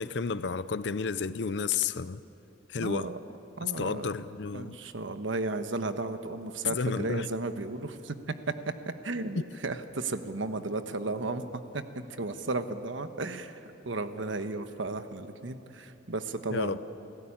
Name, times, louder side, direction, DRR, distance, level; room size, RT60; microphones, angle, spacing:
voice 1, 0.0-2.2 2.7-3.1 3.8-4.8 6.6-7.3 16.5-16.8, left 5 dB, 65° left, 14 dB, 0.5 m, -31 dB
voice 2, 2.8-3.2 3.6-4.1 4.5-8.5 8.8-13.5 13.8-16.8, right 2 dB, 85° right, 9 dB, 1.2 m, -34 dB
30.0 x 16.5 x 8.8 m, 3.0 s
head